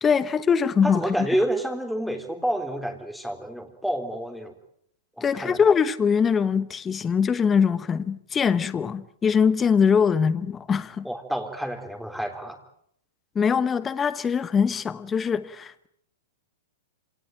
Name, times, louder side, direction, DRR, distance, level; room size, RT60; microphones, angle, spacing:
voice 1, 0.0-1.0 5.2-11.1 13.3-15.9, left 6 dB, 15° left, 1.0 m, -22 dB
voice 2, 0.8-4.5 5.2-5.6 11.0-12.6, right 1 dB, ahead, 3.6 m, -29 dB
27.0 x 18.0 x 9.0 m
hypercardioid pair, 135°, 0 cm